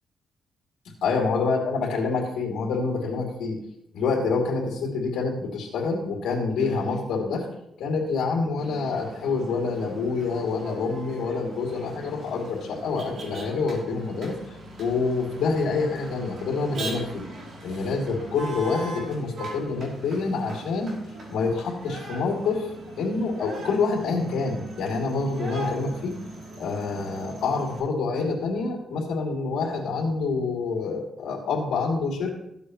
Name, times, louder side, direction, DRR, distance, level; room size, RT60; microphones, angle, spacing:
voice 1, 1.0-3.6 3.9-7.5 7.8-14.4 14.8-17.3 17.6-21.0 21.3-22.7 23.0-26.1 26.6-32.3, left 4 dB, 85° left, 0 dB, 2.6 m, -27 dB
Motor vehicle (road), 8.6-27.8, right 1 dB, 55° right, 3.0 m, -40 dB
14.0 x 8.4 x 3.1 m, 0.81 s
cardioid pair, 150°, 0 cm